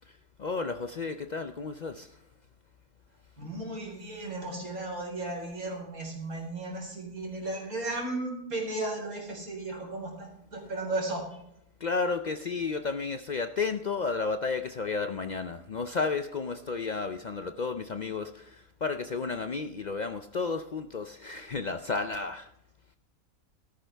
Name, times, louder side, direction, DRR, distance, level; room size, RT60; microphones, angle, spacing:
voice 1, 0.4-2.1 11.8-22.5, left 4 dB, 75° left, 8 dB, 0.4 m, -32 dB
voice 2, 3.4-11.2, right 2 dB, 75° right, 0 dB, 4.7 m, -35 dB
14.0 x 13.5 x 3.4 m, 0.77 s
omnidirectional pair, 1.5 m